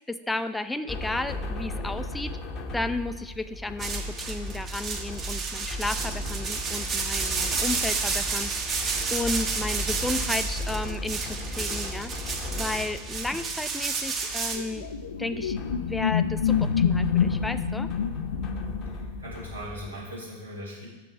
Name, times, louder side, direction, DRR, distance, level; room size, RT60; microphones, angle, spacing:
voice 1, 0.1-2.4 2.7-14.9 15.2-17.9, left 2 dB, 5° left, 11 dB, 0.4 m, -33 dB
sound 1, 0.9-19.9, left 1 dB, 35° left, 0.8 m, -37 dB
sound 2, 3.8-14.6, right 4 dB, 25° right, 1.0 m, -31 dB
sound 3, 14.4-19.5, left 7 dB, 65° left, 0.4 m, -27 dB
voice 2, 18.8-20.9, equal, 85° right, -5 dB, 2.9 m, -39 dB
6.7 x 5.7 x 6.0 m, 1.1 s
figure-of-eight pair, 90°, 0 cm